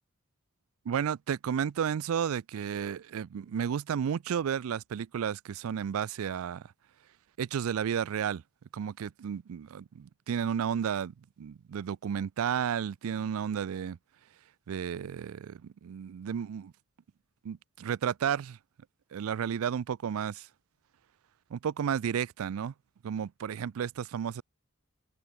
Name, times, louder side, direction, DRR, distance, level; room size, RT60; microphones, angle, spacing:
voice 1, 0.9-6.7 7.4-8.4 8.7-14.0 14.7-16.7 17.4-18.6 19.1-20.5 21.5-22.7 23.0-24.4, right 8 dB, 75° right, 0.4 m, -32 dB
open air
head